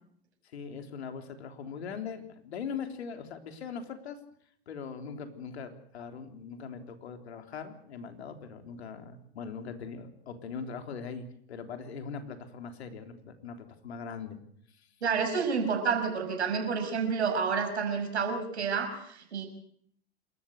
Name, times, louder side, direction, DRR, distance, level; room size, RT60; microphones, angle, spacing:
voice 1, 0.5-4.2 4.7-14.4, left 6 dB, 75° left, 6 dB, 3.4 m, -41 dB
voice 2, 15.0-19.5, right 5 dB, 80° right, 6 dB, 6.0 m, -29 dB
28.0 x 14.0 x 8.2 m, 0.67 s
hypercardioid pair, 100°, 33 cm